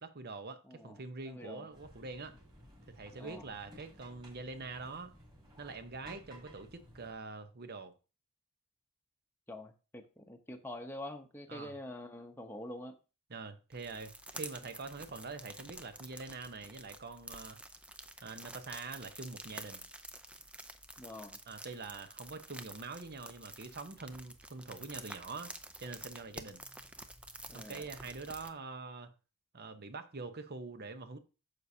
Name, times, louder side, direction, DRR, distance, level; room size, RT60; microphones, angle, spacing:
voice 1, 0.0-2.4 2.9-5.1 5.6-7.9 11.5-11.8 13.3-17.6 18.2-19.9 21.5-25.5 25.8-26.6 27.5-29.1 29.5-31.2, right 3 dB, 45° right, 0.9 m, -45 dB
voice 2, 0.6-1.7 3.2-3.5 9.5-13.0 21.0-21.4 27.5-27.8, left 1 dB, 10° left, 0.9 m, -46 dB
sound 1, 1.7-7.1, equal, 20° right, 3.5 m, -56 dB
sound 2, 13.7-28.5, right 1 dB, 5° right, 0.5 m, -49 dB
9.2 x 6.9 x 2.8 m
head